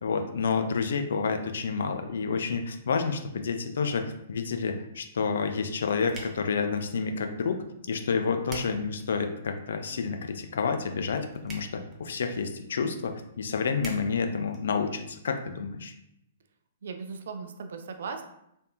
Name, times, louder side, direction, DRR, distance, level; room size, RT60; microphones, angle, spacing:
voice 1, 0.0-15.9, left 5 dB, 60° left, 6 dB, 0.3 m, -29 dB
sound 1, 5.3-15.3, right 2 dB, 15° right, 0.6 m, -50 dB
voice 2, 16.8-18.2, right 5 dB, 55° right, 6 dB, 0.3 m, -37 dB
3.3 x 2.6 x 2.3 m, 0.79 s
figure-of-eight pair, 110°, 0 cm